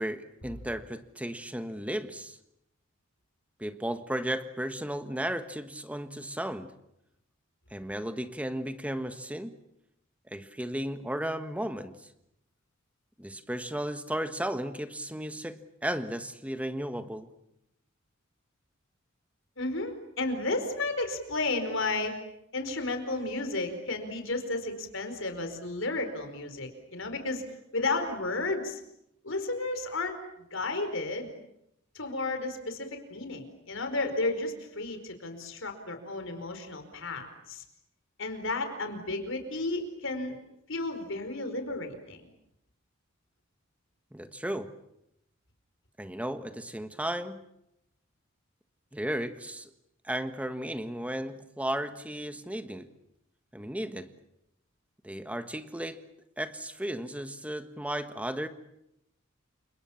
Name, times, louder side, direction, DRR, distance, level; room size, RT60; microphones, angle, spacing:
voice 1, 0.0-2.4 3.6-6.7 7.7-9.5 10.3-12.1 13.2-17.3 44.1-44.8 46.0-47.4 48.9-49.7 50.0-52.9 53.5-54.1 55.0-56.0 56.4-58.5, right 1 dB, 5° right, 9 dB, 1.4 m, -34 dB
voice 2, 19.6-22.2 22.5-27.4 27.7-28.8 29.2-30.2 30.5-31.3 31.9-37.6 38.2-40.4 40.7-42.2, left 2 dB, 65° left, 6 dB, 4.8 m, -33 dB
29.0 x 27.0 x 7.2 m, 0.84 s
head